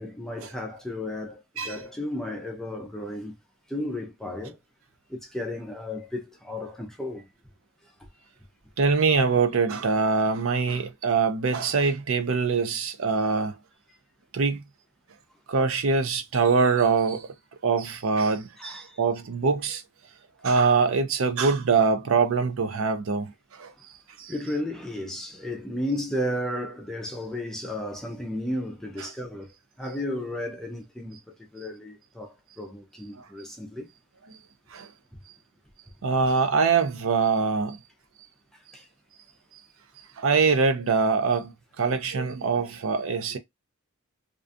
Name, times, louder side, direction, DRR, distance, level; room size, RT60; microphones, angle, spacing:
voice 1, 0.0-3.3 3.7-4.6 5.1-7.3 18.6-19.0 24.3-31.2 31.5-33.9 38.7-38.9, left 1 dB, ahead, 0.4 m, -33 dB
voice 2, 8.8-13.5 14.3-14.6 15.5-17.3 17.6-19.8 20.4-23.7 24.2-24.3 34.7-34.9 36.0-37.8 40.2-43.4, right 5 dB, 60° right, 0.5 m, -23 dB
2.4 x 2.3 x 2.5 m
head